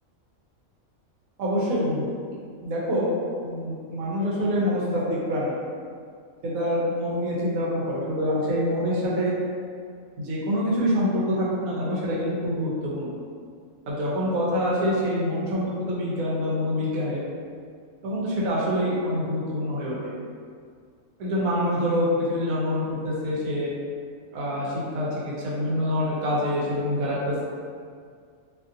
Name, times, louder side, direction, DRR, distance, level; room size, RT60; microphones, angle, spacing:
voice 1, 1.4-2.1 2.6-3.1 3.4-5.5 6.4-9.3 10.2-13.1 13.9-17.2 18.0-20.0 21.2-23.7 24.3-27.4, equal, 85° right, -6 dB, 1.2 m, -26 dB
2.8 x 2.6 x 2.4 m, 2.1 s
omnidirectional pair, 1.4 m